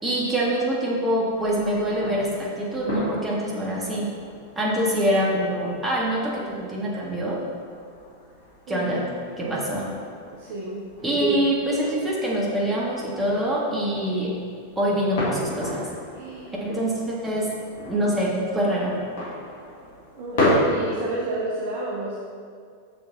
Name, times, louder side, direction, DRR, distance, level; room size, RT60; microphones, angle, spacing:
voice 1, 0.0-4.1 4.5-7.4 8.7-9.0 9.4-9.9 11.0-14.3 14.8-15.9 16.6-17.5 17.9-19.0, right 1 dB, 15° right, -4 dB, 1.6 m, -25 dB
sound 1, 1.3-20.6, left 1 dB, 60° left, 1.8 m, -34 dB
voice 2, 8.7-9.1 10.3-10.9 16.1-16.6 20.2-22.2, right 3 dB, 50° right, -4 dB, 0.9 m, -31 dB
6.3 x 5.8 x 4.0 m, 2.2 s
figure-of-eight pair, 90°, 0 cm